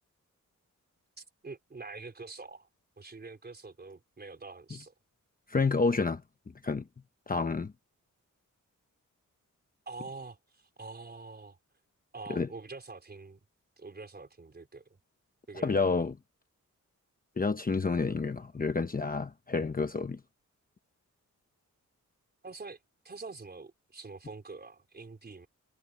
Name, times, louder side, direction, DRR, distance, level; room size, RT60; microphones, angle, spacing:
voice 1, 1.2-2.7 3.0-4.9 9.9-11.6 12.1-13.4 13.8-14.8 15.5-15.8 22.4-22.8 23.0-25.5, right 3 dB, 30° right, 4.6 m, -45 dB
voice 2, 5.5-6.2 6.6-6.8 7.3-7.7 12.3-12.5 15.6-16.1 17.4-20.2, left 4 dB, 30° left, 1.0 m, -29 dB
wide cardioid pair, 170°, 31 cm